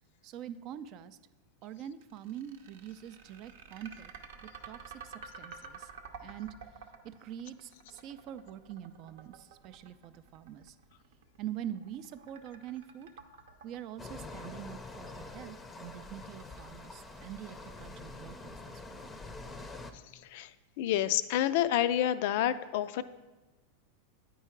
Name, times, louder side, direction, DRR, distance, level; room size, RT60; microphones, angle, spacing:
voice 1, 0.2-1.2 1.6-4.1 4.7-5.9 6.2-6.5 7.0-10.8 11.4-13.1 13.6-19.0, right 10 dB, 45° right, 13 dB, 0.3 m, -44 dB
sound 1, 2.0-18.1, right 5 dB, 75° right, 0.7 m, -51 dB
sound 2, 14.0-19.9, left 3 dB, 15° left, 0.5 m, -46 dB
voice 2, 20.8-23.0, left 11 dB, 65° left, 14 dB, 0.3 m, -28 dB
8.9 x 4.6 x 4.5 m, 1.1 s
hypercardioid pair, 120°, 0 cm